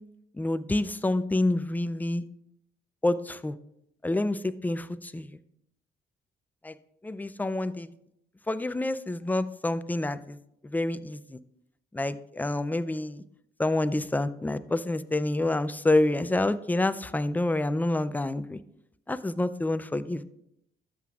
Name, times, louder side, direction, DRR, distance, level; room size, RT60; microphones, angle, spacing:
voice 1, 0.4-2.3 3.0-3.6 4.0-5.4 6.6-6.7 7.0-7.9 8.5-10.4 10.7-11.4 11.9-13.2 13.6-18.6 19.1-20.3, left 2 dB, 10° left, 13 dB, 0.4 m, -28 dB
13.0 x 7.7 x 2.4 m, 0.80 s
cardioid pair, 90°, 20 cm